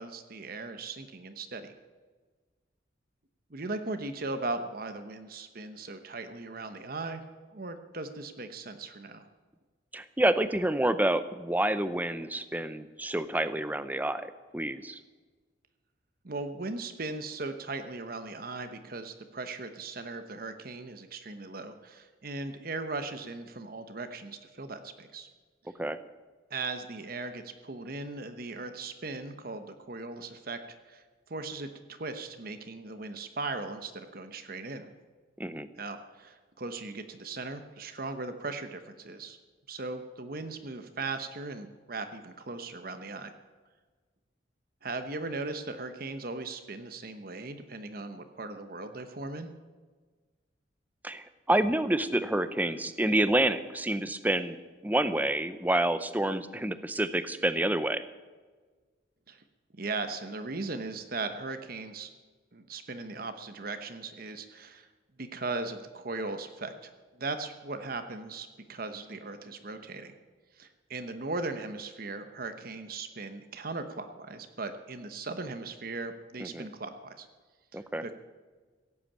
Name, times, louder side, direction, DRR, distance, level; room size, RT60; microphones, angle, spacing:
voice 1, 0.0-1.7 3.5-7.2 7.5-9.3 16.2-25.3 26.5-30.6 30.9-31.0 31.3-34.9 35.8-39.4 39.7-43.3 44.8-49.5 59.3-59.4 59.8-62.1 62.5-64.9 65.2-70.2 70.6-77.3 77.7-78.1, right 3 dB, 50° right, 8 dB, 1.0 m, -38 dB
voice 2, 9.9-15.0 25.8-26.0 35.4-35.7 51.0-54.6 54.8-58.0 76.4-76.7 77.7-78.0, right 1 dB, 10° right, 12 dB, 0.6 m, -28 dB
16.5 x 8.5 x 8.7 m, 1.4 s
head